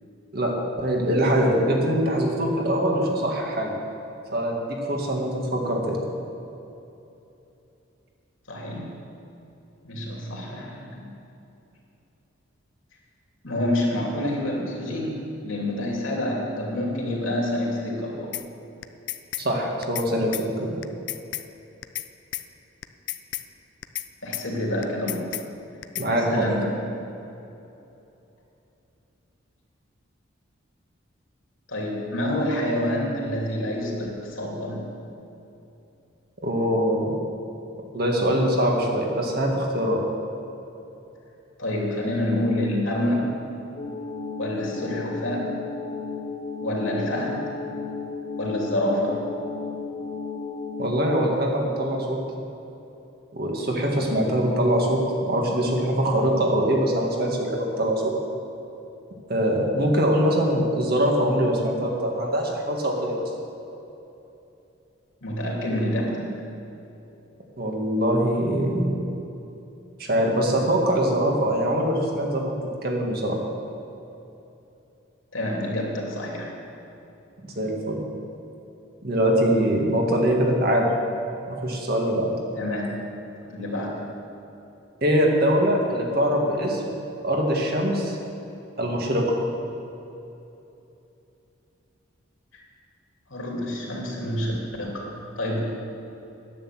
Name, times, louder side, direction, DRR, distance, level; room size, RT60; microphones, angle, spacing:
voice 1, 0.3-3.7 4.3-6.0 19.4-20.5 26.0-26.4 36.4-37.1 37.9-40.0 50.8-52.2 53.3-58.1 59.3-63.2 67.6-69.0 70.0-72.5 72.8-73.4 77.6-78.0 79.0-80.9 81.5-82.3 85.0-86.9 87.2-88.2 88.8-89.2, equal, 50° right, 0 dB, 1.9 m, -23 dB
voice 2, 8.5-9.0 9.8-11.1 13.4-15.2 15.4-18.3 24.2-25.4 26.1-26.7 31.7-34.8 41.6-43.3 44.4-45.6 46.6-47.5 48.4-49.2 65.2-66.3 75.3-76.5 82.6-82.9 83.5-84.0 93.3-94.5 94.8-95.1 95.4-95.6, left 1 dB, 75° left, -2 dB, 2.9 m, -27 dB
sound 1, 18.3-18.5 18.8-19.5 19.8-20.1 20.3-20.5 20.8-21.5 21.8-22.1 22.3-22.5 22.8-23.5 23.8-24.1 24.3-24.5 24.8-25.5 25.8-26.1, left 15 dB, 55° left, 0.5 m, -32 dB
sound 2, 43.7-51.3, left 4 dB, 30° left, 1.1 m, -34 dB
10.5 x 9.3 x 7.6 m, 2.9 s
head